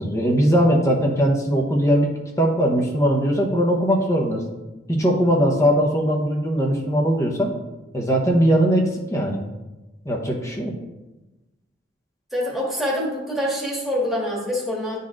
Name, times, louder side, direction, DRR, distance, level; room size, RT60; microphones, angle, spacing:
voice 1, 0.0-2.1 2.4-4.4 4.9-7.5 7.9-9.4 10.0-10.7, equal, 15° left, 0 dB, 0.8 m, -20 dB
voice 2, 12.3-15.0, left 1 dB, ahead, -4 dB, 1.5 m, -25 dB
10.5 x 4.1 x 2.4 m, 1.1 s
head